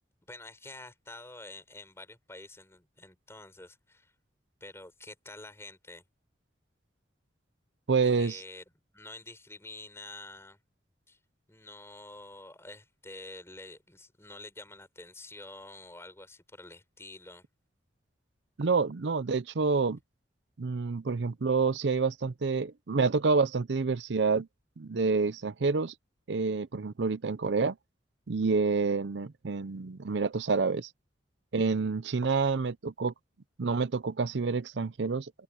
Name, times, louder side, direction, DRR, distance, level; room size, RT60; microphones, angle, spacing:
voice 1, 0.3-4.1 4.6-6.0 8.0-8.6 8.9-10.6 11.1-11.2 11.5-17.4, left 2 dB, 15° left, 7.0 m, -48 dB
voice 2, 7.9-8.4 18.6-20.0 20.6-24.5 24.8-25.9 26.3-27.7 28.3-30.9 31.5-33.1 33.6-35.3, right 4 dB, 70° right, 0.6 m, -28 dB
open air
head